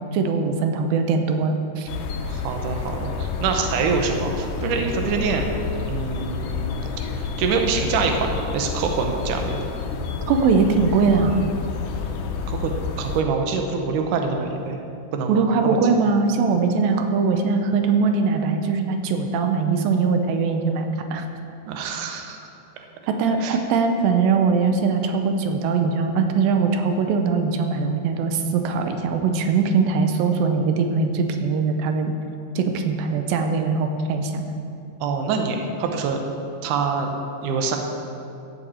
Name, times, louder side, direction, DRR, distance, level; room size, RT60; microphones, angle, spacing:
voice 1, 0.0-1.9 10.3-11.4 15.3-20.8 21.1-21.3 23.1-32.1 32.6-34.4, right 5 dB, 90° right, 5 dB, 2.5 m, -21 dB
sound 1, 1.9-13.2, left 5 dB, 85° left, 2.6 m, -29 dB
voice 2, 2.3-5.5 5.9-6.9 7.2-9.6 12.5-12.7 13.0-14.8 15.1-15.8 21.7-22.4 23.4-23.6 35.0-36.2 36.6-37.1 37.4-37.8, right 5 dB, 70° right, 3 dB, 2.2 m, -25 dB
14.0 x 8.3 x 4.3 m, 2.6 s
omnidirectional pair, 4.0 m